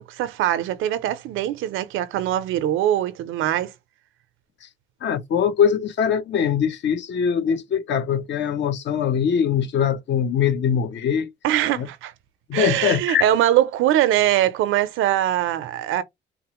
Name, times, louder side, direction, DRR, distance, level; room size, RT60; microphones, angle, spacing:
voice 1, 0.0-3.7 11.4-12.1 12.5-16.0, right 12 dB, 90° right, 0.5 m, -22 dB
voice 2, 5.0-11.3 11.8-11.9 12.5-13.2, left 8 dB, 65° left, 0.8 m, -22 dB
3.7 x 2.0 x 2.9 m
cardioid pair, 90°, 20 cm